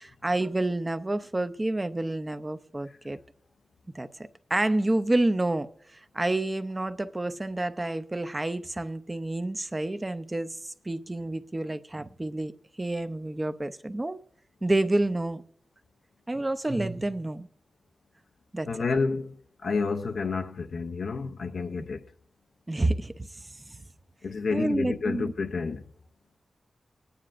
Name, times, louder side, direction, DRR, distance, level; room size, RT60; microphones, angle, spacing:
voice 1, 0.0-3.2 3.9-4.1 4.5-12.5 12.8-14.2 14.6-15.4 16.3-17.5 18.5-18.7 22.7-23.3 23.7-23.8 24.5-25.3, right 2 dB, 20° right, 0.6 m, -29 dB
voice 2, 18.7-22.1 24.2-25.9, left 4 dB, 80° left, 0.6 m, -30 dB
24.5 x 9.4 x 2.5 m
wide cardioid pair, 110°, 0 cm